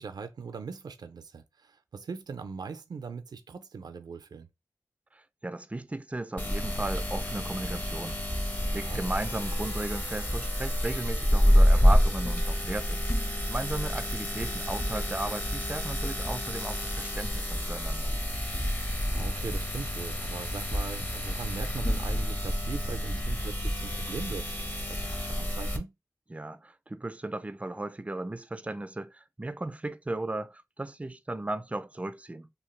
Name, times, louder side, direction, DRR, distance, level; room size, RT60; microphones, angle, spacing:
voice 1, 0.0-4.5 8.7-9.0 19.0-25.9, right 5 dB, 85° right, 0.4 m, -40 dB
voice 2, 5.1-8.2 8.7-18.1 26.3-32.5, right 2 dB, 20° right, 0.3 m, -36 dB
sound 1, 6.4-25.8, equal, 25° left, 0.8 m, -28 dB
2.8 x 2.3 x 3.1 m
cardioid pair, 50°, 7 cm